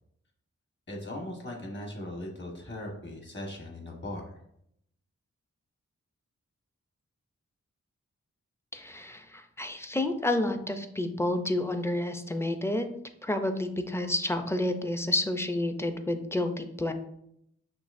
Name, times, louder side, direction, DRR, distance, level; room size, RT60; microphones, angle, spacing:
voice 1, 0.9-4.4, left 1 dB, 40° left, 0 dB, 1.3 m, -39 dB
voice 2, 8.7-12.9 13.2-16.9, left 1 dB, 10° left, 7 dB, 0.4 m, -30 dB
6.0 x 2.9 x 2.6 m, 0.75 s
cardioid pair, 60°, 30 cm